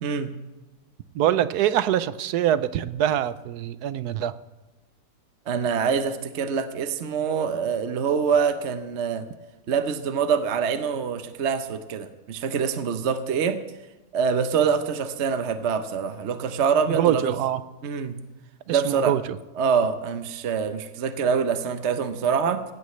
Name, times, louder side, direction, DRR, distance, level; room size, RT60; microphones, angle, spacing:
voice 1, 0.0-0.3 5.5-9.3 9.7-13.6 14.1-17.4 17.8-18.2 18.7-19.2 19.5-22.6, right 6 dB, 55° right, 9 dB, 0.8 m, -25 dB
voice 2, 1.1-4.3 16.9-17.6 18.7-19.2, right 11 dB, 70° right, 14 dB, 1.0 m, -24 dB
19.5 x 16.5 x 3.2 m, 1.1 s
omnidirectional pair, 2.0 m